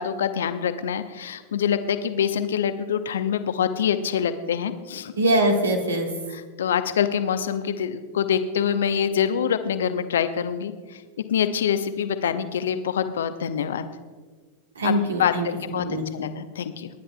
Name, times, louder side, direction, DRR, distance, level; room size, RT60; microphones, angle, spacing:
voice 1, 0.0-5.1 6.3-10.7 11.3-13.8 14.8-14.9 15.2-15.3 15.7-15.9 16.1-16.9, left 8 dB, 65° left, 10 dB, 0.8 m, -25 dB
voice 2, 5.2-6.1 14.8-16.0, right 1 dB, 70° right, 3 dB, 1.7 m, -23 dB
29.5 x 10.5 x 2.3 m, 1.4 s
figure-of-eight pair, 90°, 0 cm